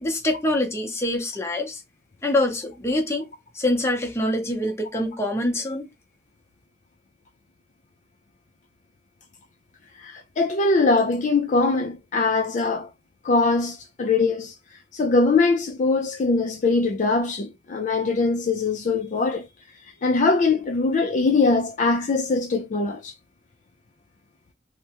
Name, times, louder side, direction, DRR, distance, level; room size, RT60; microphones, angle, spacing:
voice 1, 0.0-1.8 2.2-3.3 3.5-5.9, left 1 dB, 15° left, 0.7 m, -25 dB
voice 2, 10.0-12.9 13.2-14.5 14.9-19.5 20.0-23.1, left 3 dB, 45° left, 0.4 m, -22 dB
3.3 x 2.1 x 2.9 m
head